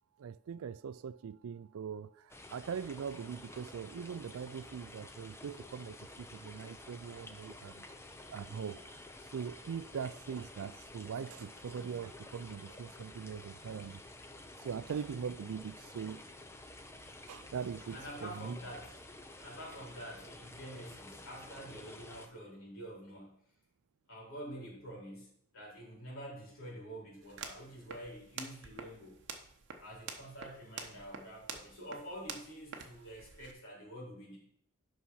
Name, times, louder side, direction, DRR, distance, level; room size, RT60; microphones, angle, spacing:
voice 1, 0.2-7.9 8.3-8.8 9.3-14.0 14.6-16.2 17.3-18.6, right 7 dB, 70° right, 0.3 m, -41 dB
sound 1, 2.3-22.3, left 2 dB, 10° left, 0.6 m, -51 dB
voice 2, 17.8-19.0 19.4-23.4 24.1-29.2 29.8-34.4, equal, 65° left, 4.1 m, -47 dB
sound 2, 27.2-33.5, right 5 dB, 55° right, 1.0 m, -48 dB
8.5 x 5.7 x 5.6 m
head